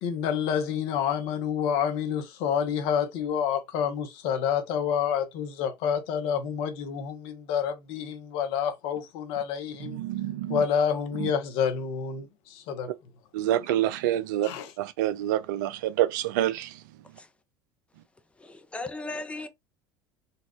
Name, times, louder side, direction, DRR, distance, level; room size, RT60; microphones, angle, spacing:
voice 1, 0.0-10.0 10.5-12.9 14.4-14.7, left 8 dB, 60° left, 0.8 m, -28 dB
voice 2, 9.8-10.6 11.2-11.3 13.3-14.5 14.8-16.7, right 13 dB, 70° right, 0.4 m, -27 dB
voice 3, 18.4-19.5, left 2 dB, 10° left, 0.6 m, -36 dB
4.0 x 2.3 x 2.3 m
hypercardioid pair, 75°, 11 cm